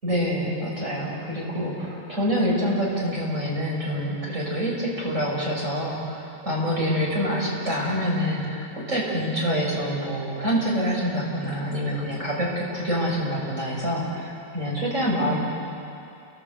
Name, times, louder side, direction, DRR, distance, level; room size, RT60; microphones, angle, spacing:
voice 1, 0.0-15.4, equal, 35° right, -4 dB, 6.8 m, -26 dB
29.0 x 20.0 x 8.3 m, 2.6 s
omnidirectional pair, 2.3 m